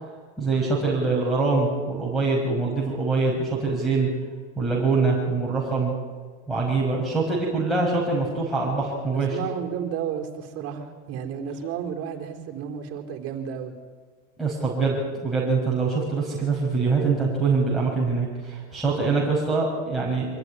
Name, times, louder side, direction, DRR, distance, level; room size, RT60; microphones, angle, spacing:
voice 1, 0.4-4.1 4.6-5.9 6.5-9.4 14.4-14.9 15.2-20.3, right 4 dB, ahead, -5 dB, 5.4 m, -24 dB
voice 2, 9.1-13.7 19.0-19.2, right 8 dB, 40° right, 3 dB, 3.9 m, -32 dB
25.0 x 14.5 x 9.8 m, 1.5 s
supercardioid pair, 130°, 37 cm